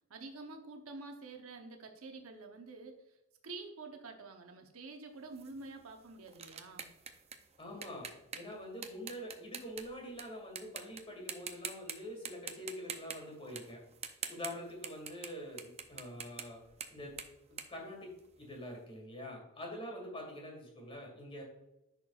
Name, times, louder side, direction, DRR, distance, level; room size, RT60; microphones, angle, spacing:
voice 1, 0.1-2.9 3.4-6.9, right 3 dB, 80° right, 4 dB, 0.9 m, -48 dB
sound 1, 5.3-10.2 10.6-11.0 11.3-11.9 12.2-18.6, right 7 dB, 30° right, 0.6 m, -45 dB
voice 2, 7.6-8.1 8.3-13.8 14.3-16.6 16.9-17.1 17.5-18.1 18.4-21.4, left 1 dB, 25° left, 0 dB, 2.3 m, -45 dB
10.5 x 4.5 x 2.4 m, 0.92 s
head